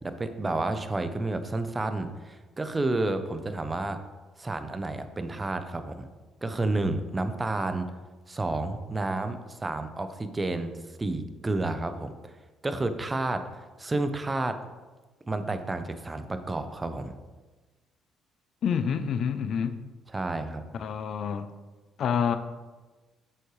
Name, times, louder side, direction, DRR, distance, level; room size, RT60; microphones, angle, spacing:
voice 1, 0.0-4.0 4.4-6.1 6.4-7.9 8.3-10.7 11.0-12.3 12.6-14.6 15.3-17.1 20.1-20.6, right 2 dB, 25° right, 9 dB, 0.8 m, -30 dB
voice 2, 18.6-19.8 20.7-21.5 22.0-22.4, left 7 dB, 65° left, 11 dB, 0.5 m, -27 dB
8.2 x 7.6 x 3.2 m, 1.3 s
supercardioid pair, 65°, 0 cm